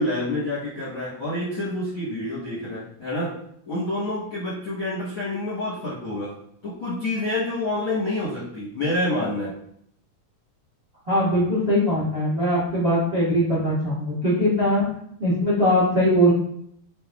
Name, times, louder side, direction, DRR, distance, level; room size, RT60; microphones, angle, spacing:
voice 1, 0.0-3.3 3.6-6.4 6.6-9.5, left 1 dB, 60° left, -6 dB, 1.3 m, -28 dB
voice 2, 11.1-14.8 15.2-16.3, equal, 60° right, -9 dB, 0.6 m, -21 dB
7.2 x 2.6 x 2.4 m, 0.70 s
omnidirectional pair, 4.1 m